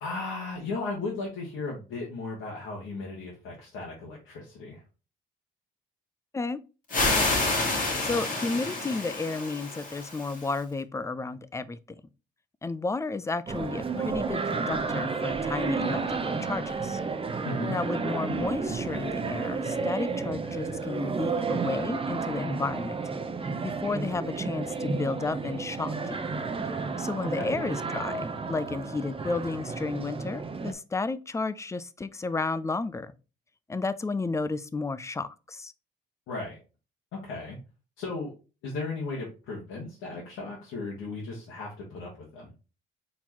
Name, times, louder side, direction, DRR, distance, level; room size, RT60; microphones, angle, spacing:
voice 1, 0.0-4.8 17.4-17.7 27.3-27.5 36.3-36.6 37.1-37.6 38.0-38.3 38.6-42.5, left 3 dB, 90° left, 1.4 m, -36 dB
sound 1, 6.9-10.6, left 2 dB, 40° left, 1.8 m, -28 dB
voice 2, 8.0-11.8 12.6-17.0 17.7-23.0 23.6-25.9 26.2-26.3 27.0-33.1 33.7-35.7, left 3 dB, 15° left, 0.4 m, -32 dB
sound 2, 13.5-30.7, right 4 dB, 25° right, 0.7 m, -31 dB
4.2 x 3.9 x 3.0 m
cardioid pair, 90°, 20 cm